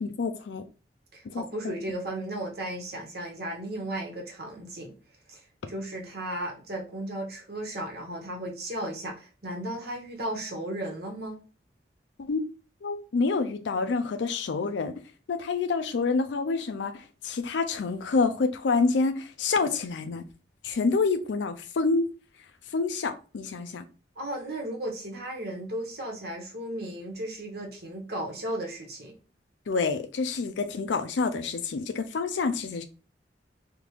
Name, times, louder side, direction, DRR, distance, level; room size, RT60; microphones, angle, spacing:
voice 1, 0.0-0.6 1.3-1.7 12.3-12.4 12.8-14.9 15.3-20.2 20.6-22.0 22.7-23.8 29.7-32.8, left 4 dB, 75° left, 0.4 m, -27 dB
voice 2, 1.1-4.9 5.3-5.4 5.7-11.4 24.2-29.1, right 1 dB, 60° right, 1.2 m, -35 dB
3.5 x 2.4 x 3.0 m
head